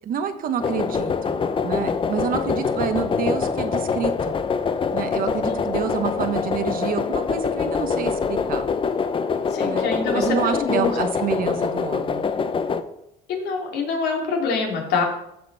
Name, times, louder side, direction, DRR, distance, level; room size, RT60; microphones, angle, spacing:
voice 1, 0.0-4.4 4.9-8.6 9.6-9.9 10.1-12.3, right 7 dB, 55° right, 9 dB, 1.1 m, -28 dB
sound 1, 0.6-12.8, left 5 dB, 30° left, 0.6 m, -24 dB
voice 2, 9.5-10.9 13.3-15.0, left 4 dB, 75° left, 1 dB, 2.6 m, -25 dB
14.0 x 5.3 x 4.1 m, 0.80 s
cardioid pair, 110°, 17 cm